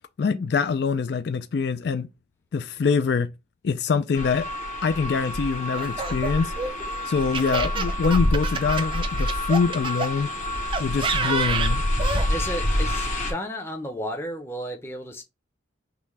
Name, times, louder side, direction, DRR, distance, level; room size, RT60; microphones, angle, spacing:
voice 1, 0.2-2.1 2.5-3.3 3.6-4.5 4.8-6.5 7.1-10.3 10.8-11.8, left 5 dB, 60° left, 0.3 m, -24 dB
sound 1, 4.1-13.3, left 1 dB, 40° left, 1.0 m, -27 dB
Laughter, 5.7-10.1 10.7-12.3, right 4 dB, 25° right, 0.3 m, -29 dB
voice 2, 12.3-15.2, equal, 15° left, 0.7 m, -33 dB
5.9 x 2.2 x 3.2 m
head